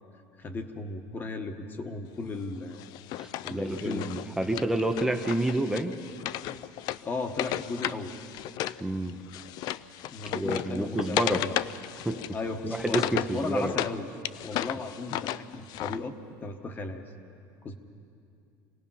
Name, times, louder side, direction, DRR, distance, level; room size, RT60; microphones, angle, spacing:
voice 1, 0.4-2.8 3.4-4.1 7.0-8.1 10.1-11.5 12.3-14.1 14.4-16.2 16.4-17.0 17.6-17.7, left 3 dB, 20° left, 6 dB, 1.1 m, -35 dB
Wood, 2.8-8.8 9.1-13.9 14.2-16.0, left 13 dB, 45° left, 0.4 m, -34 dB
voice 2, 3.2-6.0 8.8-9.2 10.3-11.4 12.1-12.2 12.6-13.7, right 1 dB, 5° right, 5 dB, 0.7 m, -29 dB
26.0 x 18.5 x 5.6 m, 2.5 s
cardioid pair, 160°, 9 cm